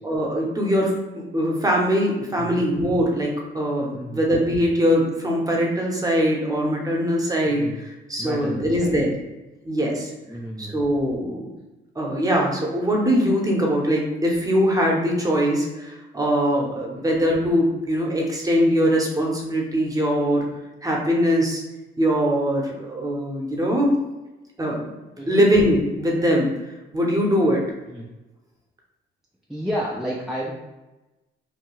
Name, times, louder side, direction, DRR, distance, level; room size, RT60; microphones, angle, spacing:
voice 1, 0.0-0.9 1.1-9.1 9.6-10.1 10.6-11.5 11.9-20.5 20.8-21.6 22.0-23.9 24.6-24.9 25.3-26.5 26.9-27.6, equal, 15° right, -1 dB, 0.7 m, -22 dB
voice 2, 2.4-2.7 3.9-4.4 7.5-7.8 8.2-9.1 10.3-10.8 16.9-17.1 25.2-25.4 27.9-28.1 29.5-30.5, equal, ahead, -3 dB, 0.3 m, -31 dB
2.7 x 2.2 x 3.0 m, 1.1 s
cardioid pair, 90°, 20 cm